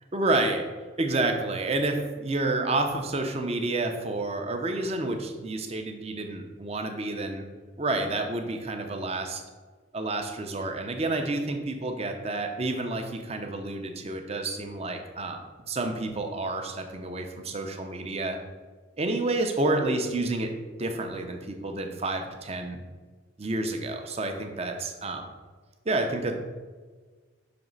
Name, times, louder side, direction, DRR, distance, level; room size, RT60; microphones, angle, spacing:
voice 1, 0.1-0.7 1.0-7.4 7.8-9.4 9.9-15.4 15.7-18.4 19.0-22.8 23.4-25.3 25.9-26.3, right 2 dB, 30° right, 5 dB, 0.5 m, -29 dB
5.9 x 3.1 x 5.2 m, 1.4 s
head